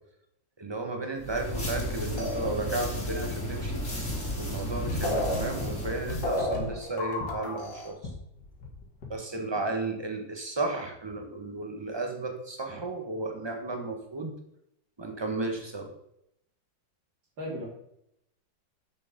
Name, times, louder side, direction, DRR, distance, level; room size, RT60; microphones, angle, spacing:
voice 1, 0.6-3.8 4.4-8.0 9.1-14.3 15.0-15.9, right 2 dB, 15° right, 3 dB, 1.1 m, -33 dB
sound 1, 1.2-6.5, left 1 dB, 40° left, 3.4 m, -34 dB
sound 2, 1.6-9.1, left 3 dB, 65° left, 2.4 m, -45 dB
sound 3, 2.2-3.0 4.6-4.7 4.9-7.9, left 1 dB, 85° left, 2.8 m, -32 dB
voice 2, 4.6-4.9 9.6-9.8 17.4-17.6, equal, 85° right, -8 dB, 3.6 m, -38 dB
7.6 x 6.7 x 5.2 m, 0.78 s
omnidirectional pair, 2.0 m